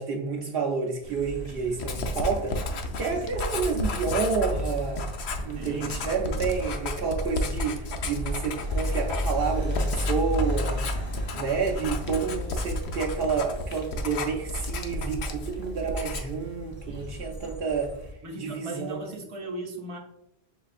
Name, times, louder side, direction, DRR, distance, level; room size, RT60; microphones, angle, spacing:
voice 1, 0.0-2.6 3.0-5.0 5.4-10.8 11.3-17.9 18.4-19.0, right 5 dB, 70° right, 1 dB, 0.7 m, -29 dB
sound 1, 1.0-18.1, equal, 25° left, 0.8 m, -35 dB
Writing, 1.8-15.6 15.9-16.4, left 2 dB, 85° left, 0.9 m, -33 dB
voice 2, 5.5-6.0 16.9-17.2 18.2-20.0, right 2 dB, 35° right, 1 dB, 0.8 m, -38 dB
5.9 x 3.2 x 2.4 m, 0.80 s
omnidirectional pair, 1.1 m